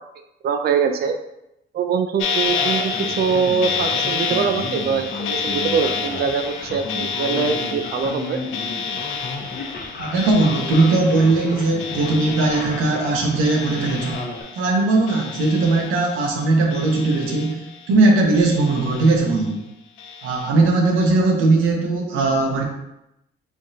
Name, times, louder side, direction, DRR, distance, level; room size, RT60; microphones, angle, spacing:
voice 1, 0.4-1.2 1.7-8.4, right 6 dB, 50° right, 6 dB, 0.4 m, -23 dB
sound 1, 2.2-14.8 15.1-16.3 16.7-17.9 18.3-19.4 20.0-20.5, left 6 dB, 80° left, 0.5 m, -29 dB
Male speech man speaking, 2.5-14.4, left 3 dB, 50° left, 0.8 m, -33 dB
voice 2, 10.0-14.2 14.6-17.6 17.9-19.6 20.2-22.7, right 2 dB, 90° right, 1 dB, 0.9 m, -19 dB
3.6 x 3.5 x 2.7 m, 0.85 s
cardioid pair, 90°, 20 cm